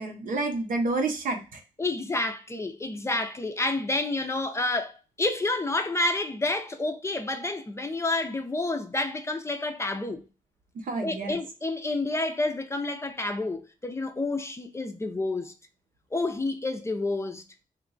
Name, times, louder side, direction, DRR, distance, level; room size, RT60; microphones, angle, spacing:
voice 1, 0.0-1.6 10.7-11.4, right 3 dB, 75° right, 0.8 m, -29 dB
voice 2, 1.8-10.3 11.0-15.5 16.1-17.4, left 2 dB, 20° left, 0.4 m, -29 dB
2.9 x 2.3 x 3.8 m
wide cardioid pair, 115°, 14 cm